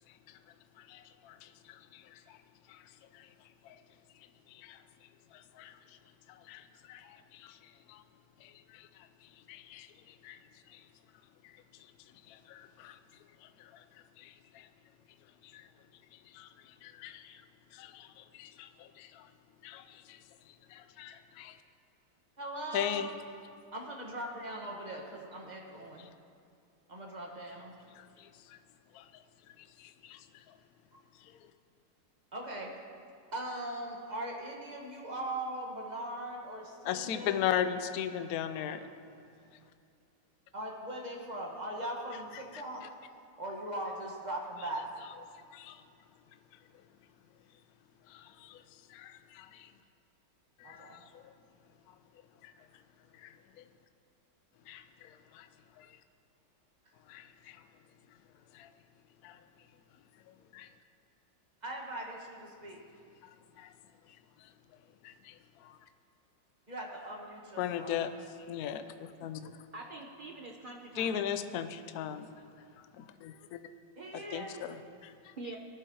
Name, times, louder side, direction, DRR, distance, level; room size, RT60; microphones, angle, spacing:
voice 1, 0.8-2.4 2.7-2.8 3.1-3.3 3.6-3.8 4.5-4.8 5.3-5.8 6.3-7.6 7.9-8.0 8.4-8.9 9.5-9.9 10.2-10.4 10.7-10.8 12.3-13.0 13.6-13.8 14.2-14.7 15.5-15.6 16.3-16.5 16.8-17.4 17.7-19.3 19.6-20.2 20.7-21.6 22.7-23.1 28.0-28.6 28.9-29.1 29.8-30.2 36.8-38.9 45.5-45.8 48.1-48.6 48.9-49.7 50.6-51.3 52.4-52.5 53.2-53.6 54.7-55.5 55.8-55.9 57.1-57.6 58.5-58.7 59.2-59.4 60.5-60.7 63.6-63.7 65.0-65.8 67.6-68.1 68.5-69.5 71.0-72.3 73.0-73.6 74.1-75.3, left 9 dB, 70° left, 10 dB, 0.9 m, -39 dB
voice 2, 22.4-23.1 23.7-26.1 26.9-27.7 30.9-31.0 32.3-32.7 33.3-37.5 40.5-42.8 43.4-44.9 50.6-51.0 61.6-62.8 66.7-67.9 74.0-74.6, right 1 dB, 25° right, -1 dB, 1.2 m, -40 dB
voice 3, 69.7-71.2 74.0-74.4 75.4-75.6, right 2 dB, 60° right, 0 dB, 0.5 m, -45 dB
18.0 x 11.5 x 2.9 m, 2.4 s
omnidirectional pair, 2.0 m